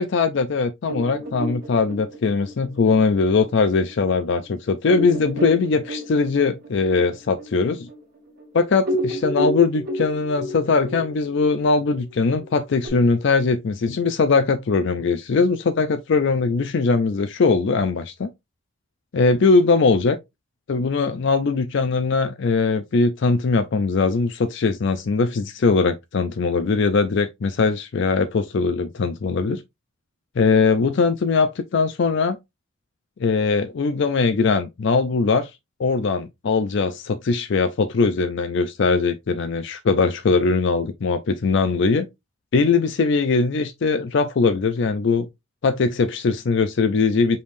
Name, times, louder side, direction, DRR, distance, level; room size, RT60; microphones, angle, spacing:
voice 1, 0.0-7.9 8.5-18.3 19.1-20.2 20.7-29.6 30.4-32.4 33.2-35.5 35.8-42.1 42.5-45.3 45.6-47.4, left 4 dB, 55° left, 0.4 m, -20 dB
sound 1, 0.9-4.0 4.4-4.5 4.9-8.5 8.8-12.9, equal, 50° right, 1.6 m, -31 dB
5.3 x 3.3 x 2.5 m
head